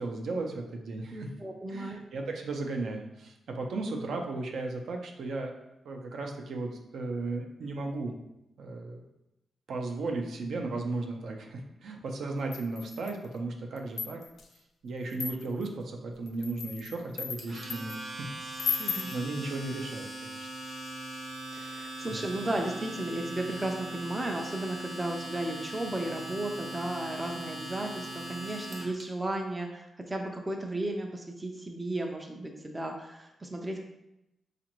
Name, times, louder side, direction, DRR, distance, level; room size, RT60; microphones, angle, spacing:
voice 1, 0.0-1.3 1.7-5.5 5.8-8.1 8.6-9.0 9.7-14.2 14.8-18.3 18.8-20.5 22.0-22.2, right 3 dB, 65° right, 2 dB, 0.5 m, -35 dB
voice 2, 1.1-2.0 18.8-19.1 21.5-33.8, right 1 dB, 15° right, 2 dB, 0.4 m, -34 dB
sound 1, 12.5-13.3 13.8-14.5 15.1-15.7 16.3-18.0 18.6-19.2, left 6 dB, 75° left, 0.4 m, -35 dB
Domestic sounds home sounds, 17.4-29.0, right 1 dB, 40° right, 0.8 m, -40 dB
4.9 x 2.5 x 3.0 m, 0.88 s
wide cardioid pair, 170°, 0 cm